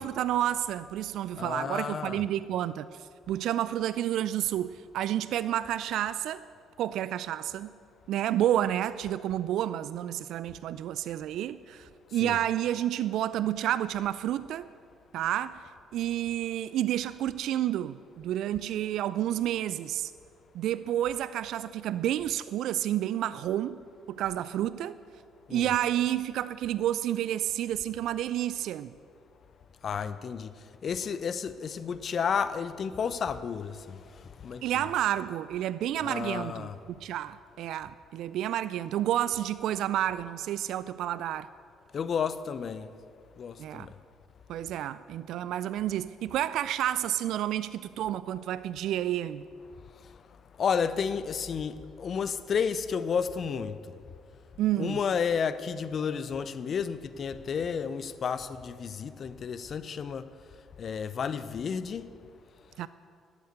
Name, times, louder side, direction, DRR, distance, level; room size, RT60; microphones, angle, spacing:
voice 1, 0.0-6.4 6.8-7.7 8.1-14.7 15.1-15.6 15.9-20.1 20.5-23.8 24.1-24.9 25.5-28.9 34.6-36.7 37.0-41.5 43.6-43.9 44.5-49.4 54.6-55.0 62.8-62.9, right 12 dB, 65° right, 0.3 m, -30 dB
voice 2, 1.4-2.3 12.1-12.4 25.5-25.7 29.8-30.5 30.8-34.9 36.0-36.8 41.9-42.9 43.4-44.0 50.0-50.1 50.6-53.8 54.7-60.2 60.8-62.1, left 6 dB, 50° left, 0.6 m, -32 dB
12.0 x 8.5 x 8.1 m
hypercardioid pair, 50°, 0 cm